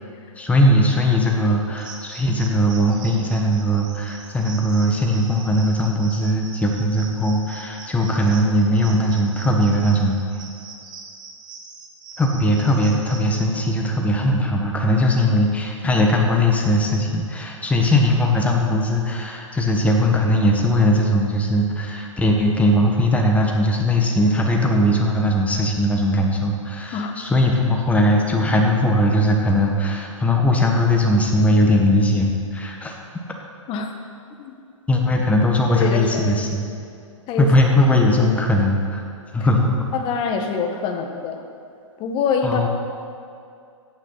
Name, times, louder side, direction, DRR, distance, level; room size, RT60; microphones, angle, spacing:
voice 1, 0.4-10.2 12.2-32.9 34.9-36.6 37.4-39.0 39.3-39.8 42.4-42.7, left 1 dB, 10° left, 1 dB, 1.4 m, -19 dB
sound 1, 1.8-13.5, right 4 dB, 25° right, 1.4 m, -41 dB
voice 2, 35.8-36.4 37.3-37.5 39.9-41.4 42.0-42.7, left 5 dB, 30° left, 4 dB, 1.4 m, -25 dB
14.5 x 9.9 x 4.1 m, 2.4 s
hypercardioid pair, 120°, 17 cm